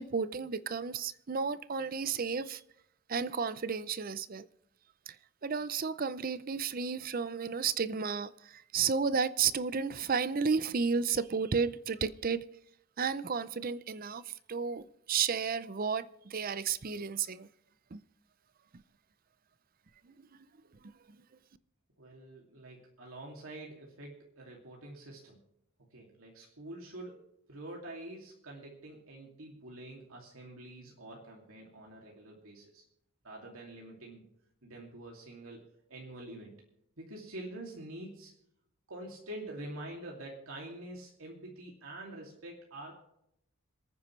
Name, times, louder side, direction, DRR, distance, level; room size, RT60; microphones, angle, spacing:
voice 1, 0.0-2.6 3.1-4.5 5.1-5.2 5.4-12.4 13.0-17.5 17.9-18.0, right 5 dB, 40° right, 0.5 m, -32 dB
voice 2, 22.0-25.4 25.9-32.8 33.2-34.3 34.6-35.6 35.9-36.5 37.0-38.3 38.9-43.1, right 1 dB, 75° right, 2.6 m, -46 dB
27.5 x 9.5 x 3.2 m
head